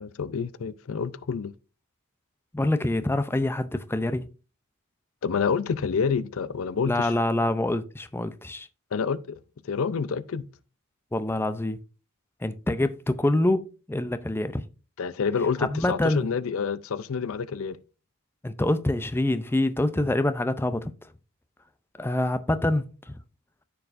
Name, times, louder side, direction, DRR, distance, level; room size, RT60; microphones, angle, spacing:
voice 1, 0.0-1.5 5.2-7.1 8.9-9.4 9.6-10.5 15.0-17.8, left 6 dB, 70° left, 0.5 m, -28 dB
voice 2, 2.5-4.3 6.9-8.7 11.1-11.8 12.4-14.6 15.6-16.3 18.4-20.9 22.0-23.1, left 1 dB, 10° left, 0.5 m, -26 dB
14.0 x 4.7 x 2.5 m
head